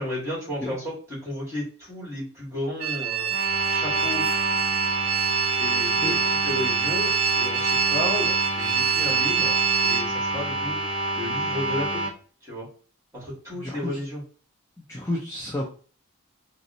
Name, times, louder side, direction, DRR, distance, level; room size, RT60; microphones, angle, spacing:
voice 1, 0.0-3.3 3.7-4.2 5.6-9.5 9.8-10.8 11.1-12.1 12.4-12.7 13.1-14.2, left 1 dB, 15° right, -5 dB, 1.4 m, -33 dB
sound 1, 2.8-10.0, right 8 dB, 70° right, 0.6 m, -25 dB
sound 2, 3.3-12.1, right 1 dB, 30° left, 1.2 m, -28 dB
voice 2, 13.6-14.0 14.9-15.7, left 1 dB, 10° left, -4 dB, 0.4 m, -31 dB
3.8 x 2.0 x 2.6 m, 0.41 s
head